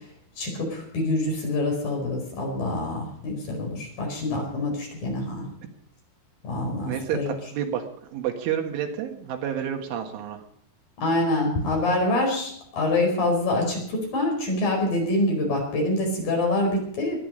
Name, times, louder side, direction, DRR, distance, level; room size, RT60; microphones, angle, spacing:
voice 1, 0.4-5.4 6.4-7.3 11.0-17.2, left 2 dB, 50° left, 1 dB, 6.3 m, -26 dB
voice 2, 6.9-7.8 8.1-10.4, right 9 dB, 80° right, 4 dB, 4.0 m, -29 dB
21.5 x 10.5 x 5.3 m, 0.63 s
omnidirectional pair, 5.5 m